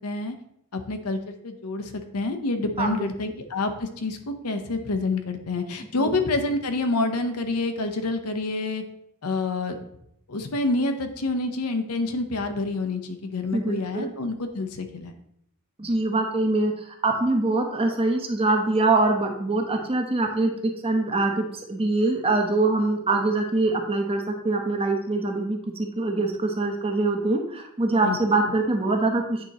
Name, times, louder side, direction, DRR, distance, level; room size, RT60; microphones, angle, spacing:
voice 1, 0.0-0.4 0.7-8.8 9.2-9.8 10.3-15.1 28.0-28.2, left 2 dB, 85° left, 6 dB, 0.8 m, -28 dB
voice 2, 2.8-3.1 6.0-6.1 13.5-14.1 15.8-16.7 17.0-29.4, right 2 dB, 25° right, 3 dB, 0.8 m, -24 dB
8.8 x 3.0 x 4.0 m, 0.74 s
head